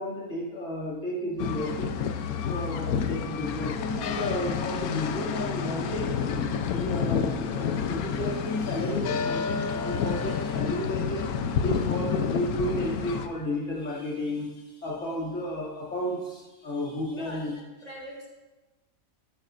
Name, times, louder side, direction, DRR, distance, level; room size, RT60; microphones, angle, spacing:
voice 1, 0.0-2.0 2.5-11.3 11.6-17.5, equal, 60° left, -5 dB, 2.9 m, -32 dB
sound 1, 1.4-13.3, left 7 dB, 90° left, 1.2 m, -29 dB
voice 2, 17.1-17.5 17.8-18.3, equal, 30° right, -4 dB, 1.8 m, -42 dB
11.5 x 11.5 x 2.5 m, 1.1 s
omnidirectional pair, 1.5 m